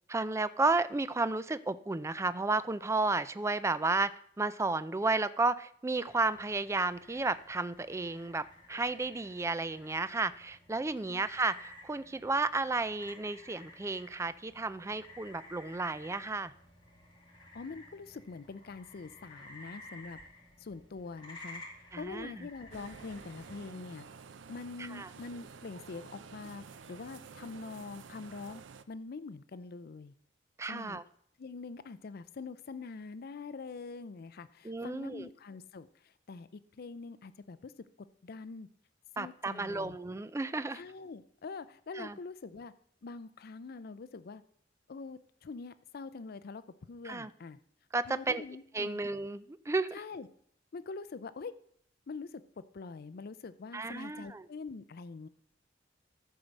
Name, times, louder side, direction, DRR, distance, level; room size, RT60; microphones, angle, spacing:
voice 1, 0.1-4.1 4.4-16.5 21.9-22.5 24.9-25.1 30.6-31.0 34.6-35.3 39.2-40.8 42.0-42.2 47.0-47.3 47.9-48.4 48.7-50.0 53.7-54.5, right 3 dB, 15° right, 15 dB, 0.4 m, -32 dB
sound 1, 6.1-23.7, left 1 dB, 25° left, 2.4 m, -54 dB
voice 2, 17.5-20.2 20.6-21.6 21.9-24.1 24.5-28.6 28.9-30.1 30.7-31.0 31.4-37.7 38.2-38.7 39.2-40.0 40.7-42.7 43.0-44.4 44.9-47.6 48.1-49.0 49.9-50.3 50.7-51.5 52.1-55.3, left 4 dB, 55° left, 14 dB, 0.4 m, -44 dB
sound 2, 22.7-28.8, right 5 dB, 85° right, 0.6 m, -51 dB
13.5 x 4.6 x 6.4 m, 0.64 s
head